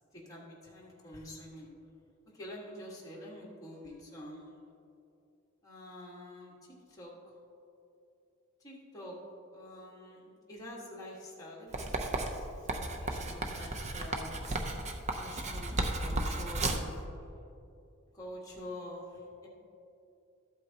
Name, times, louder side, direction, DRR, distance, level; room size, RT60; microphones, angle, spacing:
voice 1, 0.1-1.7 2.3-4.6 5.6-6.5 6.9-7.4 8.6-9.2 9.5-14.3 15.2-16.9 17.2-17.3 18.1-19.5, left 1 dB, 15° left, -6 dB, 1.6 m, -47 dB
Writing, 11.7-16.9, right 2 dB, 35° right, 0.6 m, -34 dB
13.0 x 8.1 x 2.9 m, 2.7 s
head